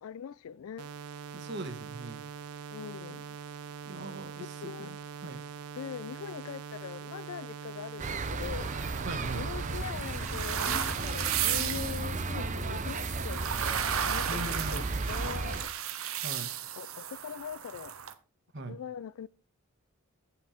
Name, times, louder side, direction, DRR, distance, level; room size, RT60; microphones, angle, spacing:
voice 1, 0.0-0.9 2.7-3.4 4.4-4.9 5.8-8.7 9.2-13.5 14.0-15.7 16.8-17.9 18.6-19.3, left 8 dB, 70° left, 0.3 m, -42 dB
sound 1, 0.8-9.8, right 6 dB, 85° right, 0.4 m, -43 dB
voice 2, 1.3-2.2 3.8-4.5 4.8-5.0 5.2-5.4 9.1-9.5 14.3-14.9 16.2-16.5 18.5-18.7, right 2 dB, 50° right, 1.2 m, -39 dB
sound 2, 8.0-15.6, right 3 dB, 35° right, 0.6 m, -35 dB
sound 3, 8.5-18.1, right 9 dB, 70° right, 0.9 m, -35 dB
8.2 x 5.9 x 5.0 m
head